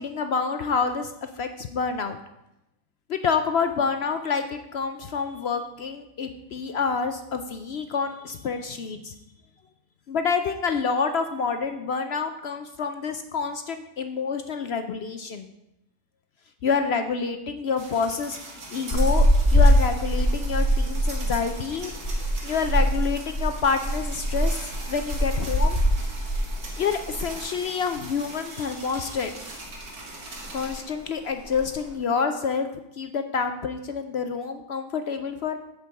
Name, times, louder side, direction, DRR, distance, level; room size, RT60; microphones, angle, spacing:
voice 1, 0.0-2.2 3.1-9.1 10.1-15.5 16.6-19.3 19.5-21.9 22.4-25.8 26.8-29.3 30.5-32.7 33.0-35.6, left 5 dB, 60° left, 7 dB, 0.7 m, -28 dB
sound 1, 17.8-30.8, right 2 dB, 75° right, 2.2 m, -41 dB
sound 2, 18.9-27.4 27.7-27.9 28.3-29.1 29.5-29.8 30.1-30.2 30.3-30.8 31.3-31.8, equal, 15° left, 2.8 m, -23 dB
8.1 x 5.3 x 7.4 m, 0.87 s
omnidirectional pair, 1.6 m